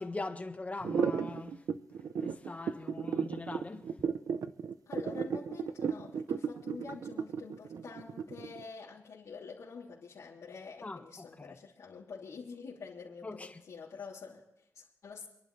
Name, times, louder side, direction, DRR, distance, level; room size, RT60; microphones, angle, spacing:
voice 1, 0.0-1.6 2.2-3.9 10.8-11.0 11.4-11.5 13.2-13.6, left 3 dB, 25° left, 1.5 m, -41 dB
sound 1, 0.8-8.6, right 6 dB, 75° right, 0.8 m, -34 dB
voice 2, 4.9-15.3, left 5 dB, 70° left, 3.1 m, -47 dB
28.0 x 11.5 x 3.3 m
wide cardioid pair, 115°, 6 cm